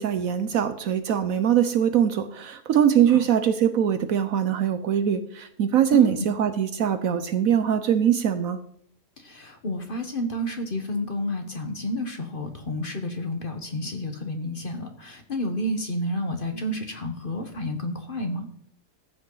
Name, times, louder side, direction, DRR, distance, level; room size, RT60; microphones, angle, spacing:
voice 1, 0.0-8.6, right 9 dB, 65° right, 10 dB, 1.0 m, -22 dB
voice 2, 5.9-6.2 9.2-18.5, left 1 dB, 35° left, 6 dB, 1.3 m, -30 dB
14.5 x 8.6 x 3.9 m, 0.65 s
omnidirectional pair, 1.8 m